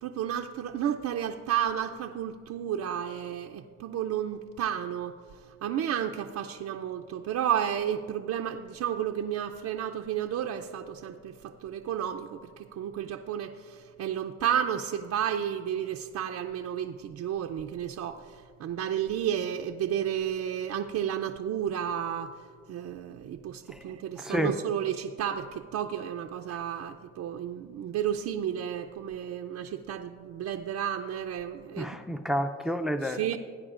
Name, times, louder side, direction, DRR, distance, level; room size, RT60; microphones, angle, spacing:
voice 1, 0.0-5.1 5.5-22.4 22.7-31.9 33.0-33.4, right 9 dB, 60° right, 4 dB, 0.5 m, -32 dB
voice 2, 24.2-24.5 31.8-33.4, equal, ahead, 9 dB, 0.5 m, -30 dB
17.5 x 9.5 x 2.5 m, 2.1 s
cardioid pair, 90°, 30 cm